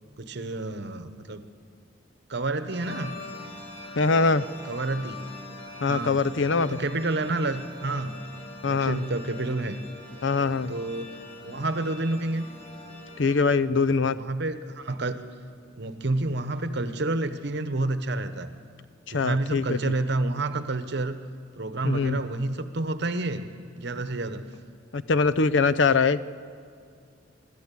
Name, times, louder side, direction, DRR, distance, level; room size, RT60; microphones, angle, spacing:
voice 1, 0.2-1.4 2.3-3.1 4.7-5.2 5.9-6.3 6.5-8.2 8.6-9.8 10.7-11.1 11.4-12.5 14.1-15.2 15.8-18.5 19.1-21.2 21.6-23.5 23.8-24.4, right 2 dB, 60° right, 10 dB, 1.1 m, -29 dB
sound 1, 2.7-13.3, left 2 dB, 35° left, 4.7 m, -43 dB
voice 2, 4.0-4.4 5.8-6.8 8.6-9.0 10.2-10.7 13.2-14.2 19.1-19.8 21.8-22.2 24.9-26.2, left 4 dB, 70° left, 15 dB, 0.6 m, -23 dB
25.5 x 12.5 x 8.4 m, 2.3 s
head